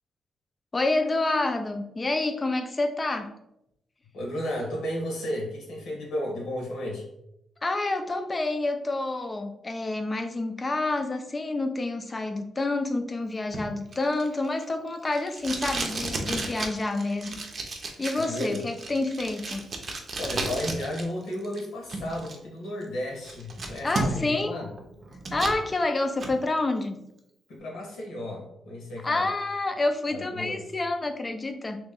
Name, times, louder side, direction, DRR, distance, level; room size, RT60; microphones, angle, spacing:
voice 1, 0.7-3.3 7.6-17.4 18.0-19.6 23.8-24.5 25.3-27.0 29.0-31.8, left 2 dB, 25° left, 7 dB, 0.5 m, -28 dB
voice 2, 4.1-7.0 18.1-18.7 20.2-24.7 27.5-29.3 30.1-30.6, left 1 dB, 85° left, -2 dB, 1.3 m, -33 dB
Packing tape duct tape, 13.5-21.0 21.3-22.3 22.8-22.9 23.2-24.4 24.8-25.6 26.0-26.3, right 2 dB, 45° right, 0.6 m, -33 dB
3.1 x 2.9 x 3.6 m, 0.82 s
cardioid pair, 110°, 0 cm